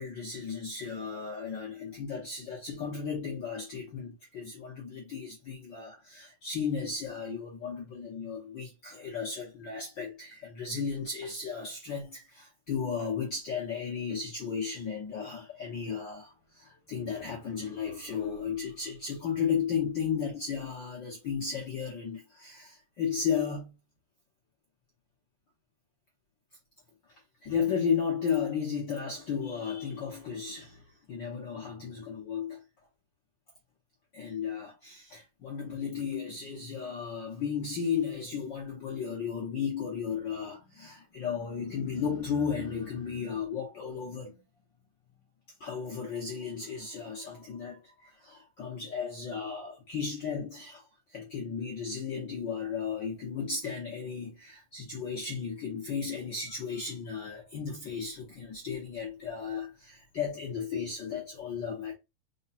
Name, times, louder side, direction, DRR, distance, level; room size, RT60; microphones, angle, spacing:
voice 1, 0.0-23.7 27.4-30.8 31.1-32.6 34.1-44.4 45.6-50.8 51.1-61.9, left 6 dB, 60° left, 1.2 m, -34 dB
4.9 x 2.2 x 4.1 m
omnidirectional pair, 3.4 m